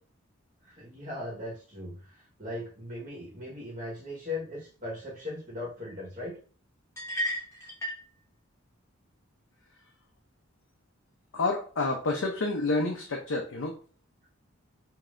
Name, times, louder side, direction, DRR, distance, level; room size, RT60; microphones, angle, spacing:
voice 1, 0.7-6.4, left 2 dB, 35° right, -5 dB, 1.3 m, -38 dB
sound 1, 7.0-8.1, equal, 15° left, 1.1 m, -33 dB
voice 2, 11.3-13.8, left 3 dB, 75° left, 1 dB, 0.7 m, -29 dB
5.2 x 2.8 x 2.5 m, 0.40 s
head